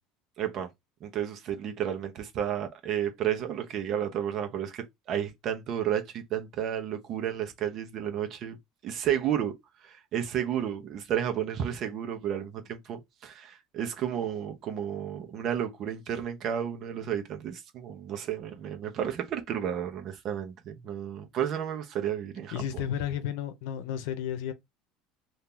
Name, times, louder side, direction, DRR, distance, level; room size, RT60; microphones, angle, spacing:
voice 1, 0.4-0.7 1.0-8.6 8.8-9.5 9.8-22.6, right 9 dB, 50° right, 0.9 m, -32 dB
voice 2, 22.5-24.5, left 9 dB, 80° left, 0.8 m, -32 dB
2.9 x 2.7 x 3.7 m
supercardioid pair, 120°, 0 cm